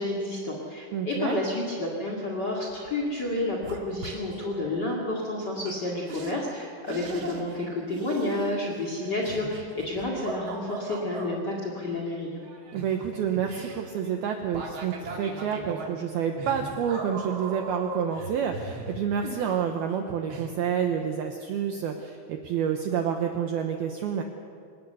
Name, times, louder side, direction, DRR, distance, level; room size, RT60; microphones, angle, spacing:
voice 1, 0.0-12.4, left 2 dB, 45° left, -1 dB, 1.3 m, -30 dB
voice 2, 0.9-1.4 12.7-24.2, right 8 dB, 75° right, 4 dB, 2.3 m, -29 dB
sound 1, 2.7-3.0 3.2-4.5 5.7-5.8 6.1-6.3 6.9-7.7 7.9-11.3 12.4-20.0 20.3-20.5, right 3 dB, 40° right, 2.4 m, -38 dB
25.5 x 18.5 x 6.9 m, 2.3 s
omnidirectional pair, 5.7 m